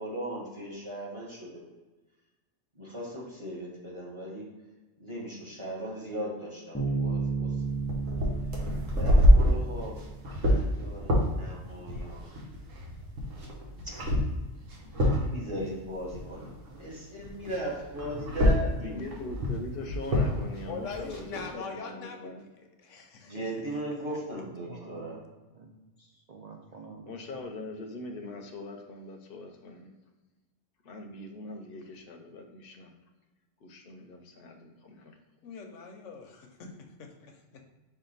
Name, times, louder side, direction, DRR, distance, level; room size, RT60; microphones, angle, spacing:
voice 1, 0.0-1.6 2.8-4.5 5.0-7.5 9.0-10.0 10.4-12.3 13.8-13.9 15.1-16.5 16.8-19.1 23.3-25.2, right 1 dB, 25° right, -4 dB, 1.2 m, -38 dB
Bass guitar, 6.7-10.4, right 4 dB, 10° left, 0.6 m, -33 dB
sound 1, 7.7-16.9 17.2-21.4, equal, 85° right, 1.4 m, -27 dB
voice 2, 16.5-16.8 24.4-25.2 25.5-27.4, right 4 dB, 65° right, 0 dB, 0.4 m, -49 dB
voice 3, 18.8-22.4 27.1-29.9 30.8-32.9 33.6-35.2, left 2 dB, 55° left, 3 dB, 0.8 m, -42 dB
voice 4, 20.7-23.7 24.1-24.2 35.4-37.6, left 5 dB, 80° left, 3 dB, 1.0 m, -43 dB
5.4 x 2.6 x 3.9 m, 1.2 s
omnidirectional pair, 1.3 m